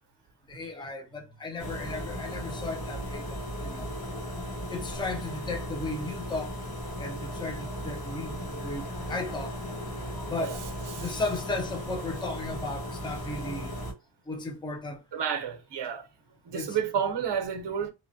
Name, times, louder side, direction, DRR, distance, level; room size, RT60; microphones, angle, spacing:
voice 1, 0.5-3.9 4.7-6.6 7.0-9.6 10.1-10.6 10.9-13.7 14.3-15.0 16.5-16.8, left 2 dB, 10° left, 0.4 m, -35 dB
sound 1, 1.6-13.9, equal, 50° left, 1.2 m, -36 dB
sound 2, 8.5-11.4, left 2 dB, 70° left, 0.8 m, -50 dB
voice 2, 15.1-16.1 16.4-17.9, right 7 dB, 60° right, 0.7 m, -31 dB
2.9 x 2.1 x 2.5 m
wide cardioid pair, 130°, 46 cm